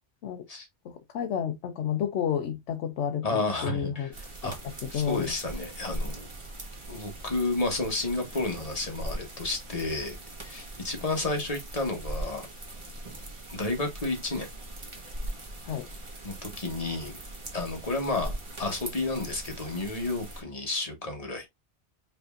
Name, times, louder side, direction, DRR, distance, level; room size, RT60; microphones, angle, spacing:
voice 1, 0.8-4.1 4.6-5.3 15.7-15.9, left 8 dB, 80° left, 1.0 m, -31 dB
voice 2, 3.2-4.6 4.9-6.3 6.9-12.5 13.5-14.5 16.2-17.2 17.5-21.5, left 2 dB, 35° left, 1.3 m, -31 dB
sound 1, 4.1-20.4, right 1 dB, 25° right, 1.2 m, -40 dB
5.2 x 3.3 x 2.4 m
omnidirectional pair, 1.2 m